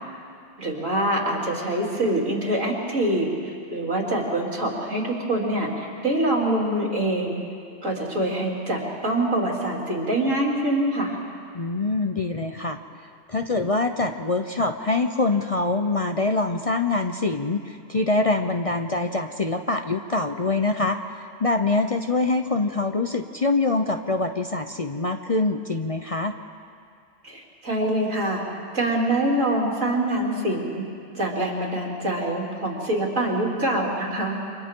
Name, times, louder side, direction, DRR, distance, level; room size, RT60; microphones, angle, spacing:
voice 1, 0.6-7.4 7.8-11.2 27.2-28.4 28.7-30.8 31.1-34.4, right 1 dB, 80° right, -3 dB, 3.8 m, -25 dB
voice 2, 11.5-12.8 13.3-21.0 21.4-26.3, left 3 dB, 35° left, 5 dB, 0.7 m, -24 dB
29.5 x 26.5 x 3.8 m, 2.4 s
omnidirectional pair, 1.3 m